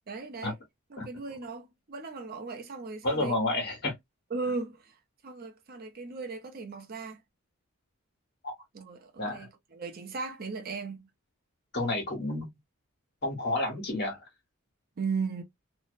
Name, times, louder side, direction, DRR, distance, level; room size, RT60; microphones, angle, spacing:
voice 1, 0.1-0.6 0.9-3.4 4.3-5.0 5.2-7.2 8.7-11.1 15.0-15.4, right 4 dB, 45° right, 0.6 m, -37 dB
voice 2, 3.0-4.0 8.4-8.5 9.2-9.5 11.7-12.5 13.2-14.2, left 2 dB, 50° left, 1.2 m, -30 dB
2.7 x 2.0 x 2.5 m
head